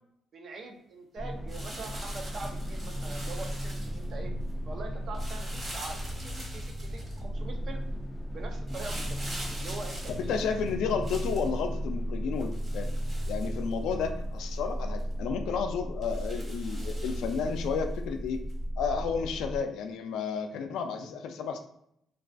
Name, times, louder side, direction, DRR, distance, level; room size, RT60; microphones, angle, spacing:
voice 1, 0.3-4.3 4.6-7.8 8.3-9.2 9.5-10.5, right 3 dB, 60° right, 3 dB, 0.5 m, -43 dB
sound 1, 1.2-19.6, equal, 5° left, 0.3 m, -35 dB
sound 2, 1.5-4.1 5.1-7.2 8.7-11.5 12.4-14.0 14.5-14.6 15.0-15.1 16.0-17.6 18.5-18.6, right 1 dB, 30° right, 0.9 m, -44 dB
voice 2, 10.3-12.9 13.3-18.4 18.8-21.6, left 6 dB, 85° left, 5 dB, 0.3 m, -32 dB
2.3 x 2.3 x 2.4 m, 0.74 s
cardioid pair, 90°, 0 cm